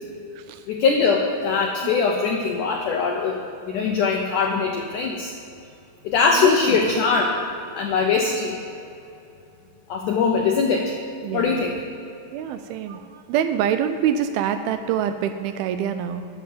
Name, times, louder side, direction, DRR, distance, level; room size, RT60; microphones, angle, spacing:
voice 1, 0.7-3.4 3.7-5.3 6.0-7.4 7.7-8.6 9.9-10.9 11.3-11.7, left 5 dB, 85° left, 2 dB, 1.7 m, -21 dB
voice 2, 6.3-6.8 11.2-11.6 12.3-16.3, right 9 dB, 85° right, 9 dB, 2.2 m, -25 dB
10.0 x 6.9 x 7.5 m, 2.6 s
omnidirectional pair, 4.7 m